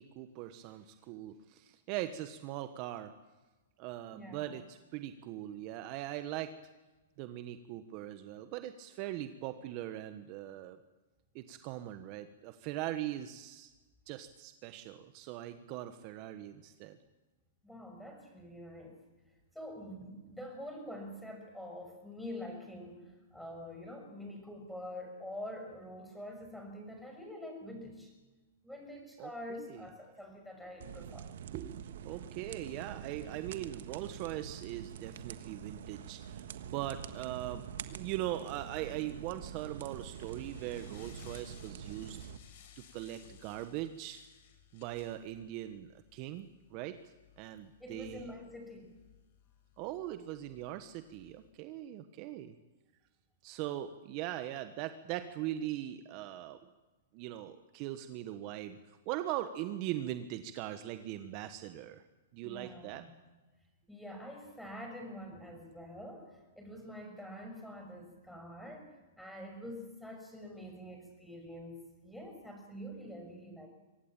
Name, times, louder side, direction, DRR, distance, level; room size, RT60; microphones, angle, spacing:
voice 1, 0.0-3.1 3.8-6.6 7.2-10.8 11.3-13.7 14.1-17.0 29.2-29.9 31.5-42.2 42.8-44.2 44.7-48.3 49.8-52.5 53.4-56.6 57.1-62.0 62.3-63.0, right 13 dB, 40° right, 10 dB, 1.2 m, -41 dB
voice 2, 4.1-4.6 17.6-19.0 19.5-28.1 28.6-31.3 32.1-32.2 47.8-48.9 62.4-63.1 63.9-71.8 72.0-73.7, left 1 dB, ahead, 3 dB, 6.0 m, -46 dB
sound 1, 30.8-42.4, right 9 dB, 70° right, 1.5 m, -46 dB
sound 2, 39.3-51.5, left 9 dB, 55° left, 4.9 m, -59 dB
24.0 x 17.5 x 9.0 m, 1.2 s
hypercardioid pair, 130°, 0 cm